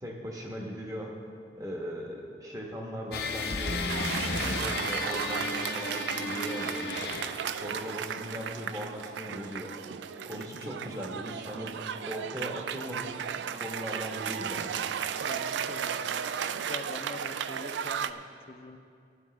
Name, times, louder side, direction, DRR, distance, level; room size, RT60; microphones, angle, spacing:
voice 1, 0.0-1.1 1.6-3.8 4.3-6.9 7.5-9.7 10.2-11.7 12.0-13.2 13.6-14.8, equal, 20° right, -1 dB, 1.1 m, -39 dB
sound 1, 3.1-7.6, left 3 dB, 70° left, 0.7 m, -33 dB
Cheering / Applause, 3.9-18.1, right 8 dB, 90° right, 0.3 m, -35 dB
voice 2, 15.2-16.3 16.6-18.8, left 2 dB, 35° left, 6 dB, 0.5 m, -44 dB
15.5 x 9.6 x 3.2 m, 2.4 s
head